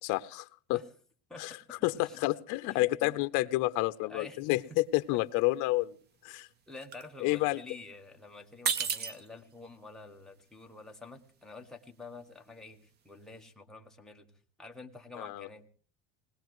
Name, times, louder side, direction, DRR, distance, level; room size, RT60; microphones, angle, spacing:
voice 1, 0.0-0.8 1.4-1.5 1.8-6.0 6.2-6.5 7.2-7.6 15.2-15.5, left 19 dB, 60° left, 13 dB, 0.7 m, -29 dB
voice 2, 1.3-2.2 2.7-3.1 4.1-4.4 4.7-4.8 6.7-14.3 14.6-15.7, left 3 dB, ahead, 0 dB, 1.1 m, -48 dB
sound 1, 4.5-4.7 5.0-5.6 5.9-8.1 8.5-13.5, right 6 dB, 30° right, 0.7 m, -37 dB
20.0 x 19.5 x 3.1 m, 0.43 s
cardioid pair, 165°, 35 cm